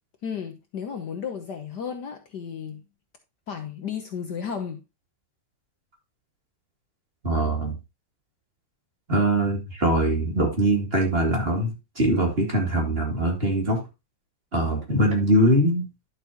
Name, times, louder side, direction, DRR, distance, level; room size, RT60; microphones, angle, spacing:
voice 1, 0.2-2.8 3.5-4.8, left 7 dB, 60° left, 1.4 m, -33 dB
voice 2, 7.2-7.7 9.1-13.8 14.5-15.9, right 1 dB, 25° right, 2.8 m, -22 dB
11.0 x 6.9 x 2.9 m
omnidirectional pair, 2.3 m